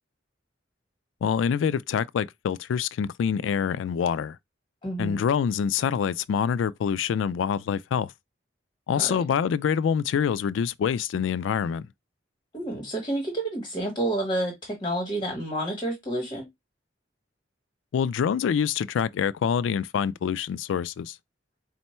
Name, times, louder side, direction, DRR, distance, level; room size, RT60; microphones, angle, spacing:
voice 1, 1.2-4.4 5.0-8.1 8.9-11.9 17.9-21.2, left 7 dB, 75° left, 0.3 m, -26 dB
voice 2, 4.8-5.2 8.9-9.2 12.5-16.5, right 1 dB, 25° left, 1.1 m, -29 dB
4.4 x 2.1 x 4.2 m
head